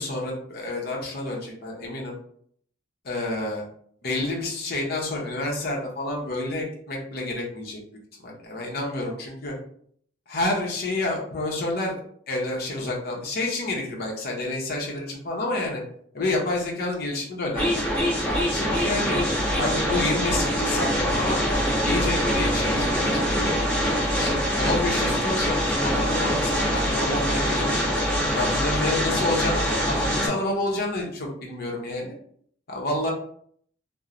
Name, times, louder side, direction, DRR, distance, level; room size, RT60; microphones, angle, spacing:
voice 1, 0.0-2.1 3.0-3.6 4.0-7.8 8.2-9.5 10.3-12.0 12.3-15.8 16.1-17.8 18.2-19.3 19.6-21.4 21.8-23.5 23.8-27.9 28.3-32.1 32.7-33.1, left 2 dB, 50° left, -1 dB, 0.7 m, -29 dB
sound 1, 17.5-30.3, equal, 10° left, 0.9 m, -24 dB
2.9 x 2.0 x 2.4 m, 0.63 s
head